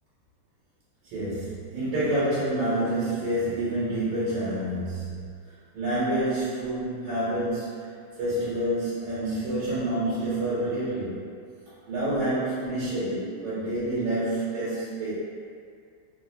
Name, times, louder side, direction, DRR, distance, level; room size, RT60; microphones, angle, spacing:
voice 1, 1.0-5.3 5.7-7.9 8.2-11.2 11.9-15.1, right 1 dB, 85° right, -11 dB, 1.8 m, -28 dB
4.0 x 2.0 x 2.6 m, 2.2 s
omnidirectional pair, 2.4 m